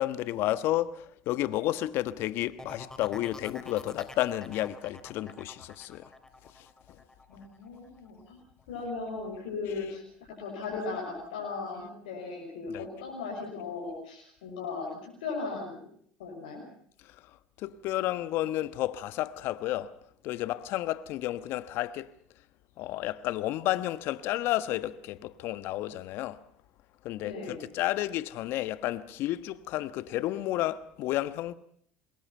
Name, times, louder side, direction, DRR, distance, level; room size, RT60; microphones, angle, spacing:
voice 1, 0.0-6.1 6.5-6.7 12.7-12.8 17.0-17.2 17.6-19.9 20.2-22.1 22.8-26.4 27.0-31.6, left 14 dB, 65° left, 1.2 m, -31 dB
sound 1, 2.6-8.2 8.6-9.1, left 2 dB, 15° left, 3.8 m, -47 dB
voice 2, 7.3-8.4 8.7-10.0 10.3-15.8 16.2-16.6 27.2-27.6, left 4 dB, 85° left, 6.4 m, -37 dB
26.5 x 21.5 x 5.6 m
hypercardioid pair, 75°, 4 cm